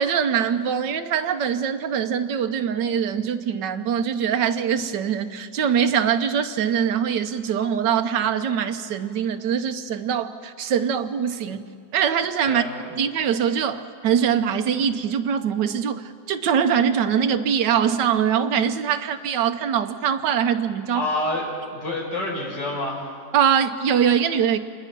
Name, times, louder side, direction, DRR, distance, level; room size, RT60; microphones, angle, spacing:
voice 1, 0.0-11.6 11.9-12.6 13.0-21.0 23.3-24.6, right 8 dB, 85° right, 7 dB, 1.5 m, -23 dB
voice 2, 12.4-12.9 20.9-23.2, left 1 dB, 80° left, -2 dB, 5.7 m, -28 dB
27.0 x 20.5 x 6.0 m, 2.2 s
omnidirectional pair, 1.9 m